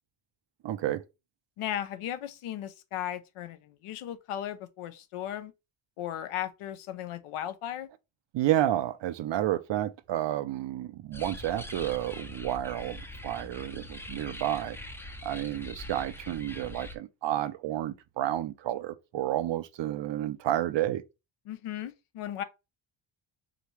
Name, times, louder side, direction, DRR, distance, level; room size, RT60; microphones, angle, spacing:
voice 1, 0.6-1.0 8.3-14.8 15.2-21.0, right 13 dB, 60° right, 0.6 m, -30 dB
voice 2, 1.6-5.5 6.0-7.9 21.5-22.4, left 11 dB, 85° left, 0.8 m, -36 dB
sound 1, 11.1-16.9, left 1 dB, 5° left, 0.4 m, -43 dB
5.0 x 2.7 x 3.1 m
cardioid pair, 105°, 49 cm